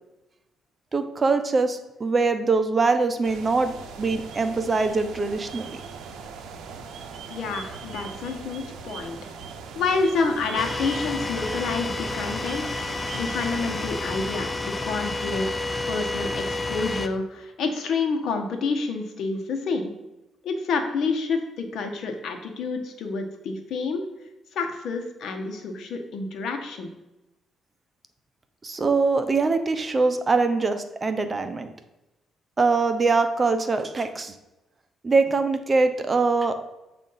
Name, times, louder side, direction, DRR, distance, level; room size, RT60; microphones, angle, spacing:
voice 1, 0.9-5.8 28.6-31.7 32.6-34.3 35.0-36.7, right 3 dB, 30° right, 8 dB, 0.6 m, -23 dB
sound 1, 3.2-14.4, right 5 dB, 80° right, 0.6 m, -40 dB
voice 2, 7.3-9.2 9.7-12.7 13.1-19.9 20.4-24.1 24.5-26.9, left 4 dB, 70° left, 4 dB, 0.9 m, -28 dB
sound 2, 10.6-17.1, left 2 dB, 20° left, 0.4 m, -30 dB
7.4 x 2.5 x 5.4 m, 0.98 s
cardioid pair, 90°, 0 cm